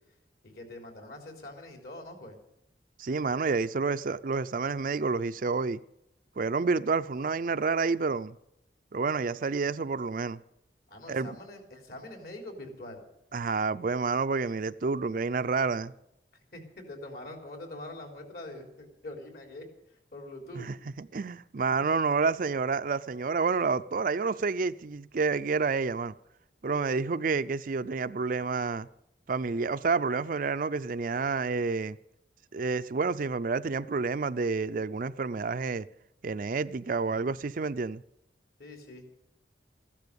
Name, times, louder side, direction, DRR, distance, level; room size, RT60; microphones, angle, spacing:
voice 1, 0.4-2.4 10.9-13.0 16.5-19.7 20.1-20.7 21.8-21.9 38.6-39.0, left 1 dB, 60° left, 3.7 m, -44 dB
voice 2, 3.0-5.8 6.4-8.4 8.9-10.4 11.1-11.3 13.3-15.9 20.5-26.1 26.6-28.9 29.3-32.0 32.5-35.9 36.2-38.0, right 4 dB, 50° right, 0.5 m, -29 dB
15.0 x 12.0 x 6.9 m
head